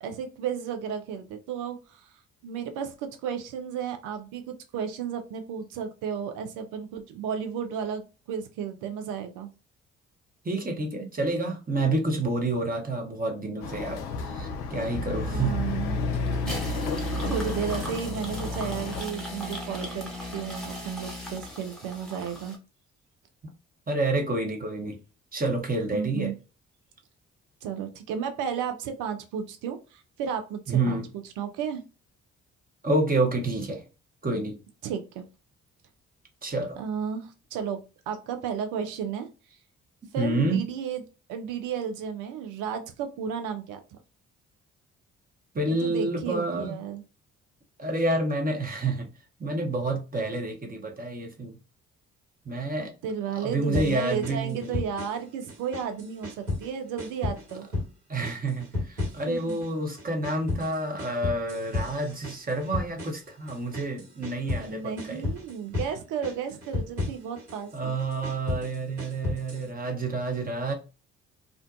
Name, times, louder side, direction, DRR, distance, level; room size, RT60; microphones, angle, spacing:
voice 1, 0.0-9.5 15.3-16.0 16.3-16.9 17.2-22.6 25.9-26.3 27.6-31.0 31.4-31.8 34.8-35.2 36.8-39.3 40.1-41.0 41.3-43.8 45.6-47.0 53.0-57.7 59.1-59.6 64.6-67.9, right 7 dB, 65° right, 0.5 m, -33 dB
voice 2, 10.4-15.6 23.9-25.0 25.3-26.3 30.7-31.1 32.8-33.8 34.2-34.6 36.4-36.8 40.2-40.6 45.5-46.8 47.8-49.1 49.4-51.6 52.4-52.9 53.4-54.8 58.1-65.3 67.7-70.7, right 2 dB, 25° right, 1.0 m, -28 dB
Chatter / Car passing by / Motorcycle, 13.6-19.0, left 3 dB, 75° left, 0.5 m, -31 dB
sound 1, 16.3-22.6, left 1 dB, ahead, 1.0 m, -38 dB
sound 2, 53.7-55.2 55.5-56.7 57.0-57.9 58.2-59.7 60.0-64.7 65.0-65.9 66.2-67.6 68.0-69.7, left 3 dB, 85° right, 1.4 m, -33 dB
2.5 x 2.2 x 2.4 m
hypercardioid pair, 45°, 34 cm